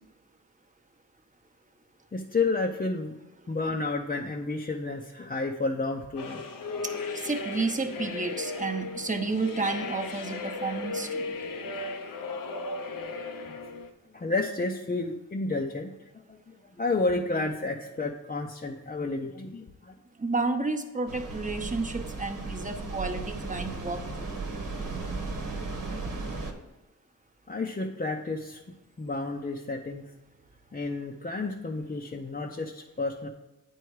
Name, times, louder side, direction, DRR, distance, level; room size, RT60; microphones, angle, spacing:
voice 1, 2.1-3.1 3.5-6.5 13.0-13.5 14.1-15.9 16.3-16.4 16.8-19.9 27.5-28.6 29.0-30.1 30.7-33.3, left 3 dB, 25° left, 1 dB, 0.6 m, -31 dB
sound 1, 6.2-13.9, left 3 dB, 90° left, 0.8 m, -36 dB
voice 2, 7.2-11.3 20.2-24.0, right 3 dB, 25° right, 6 dB, 0.8 m, -31 dB
sound 2, 21.1-26.5, right 3 dB, 85° right, 1.2 m, -35 dB
8.9 x 4.6 x 4.7 m, 1.1 s
wide cardioid pair, 85°, 33 cm